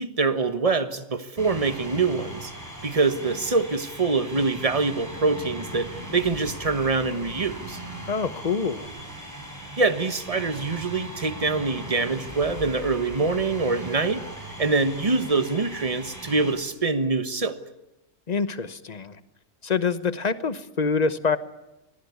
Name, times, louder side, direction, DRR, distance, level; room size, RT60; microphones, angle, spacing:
voice 1, 0.0-2.5 2.8-7.8 9.8-14.2 14.6-17.6, right 3 dB, 30° right, 11 dB, 1.3 m, -24 dB
sound 1, 1.4-16.5, right 1 dB, 15° right, 5.7 m, -39 dB
voice 2, 8.1-8.9 18.3-19.2 19.6-21.4, left 5 dB, 35° left, 14 dB, 1.1 m, -25 dB
23.5 x 18.5 x 9.6 m, 0.97 s
omnidirectional pair, 1.2 m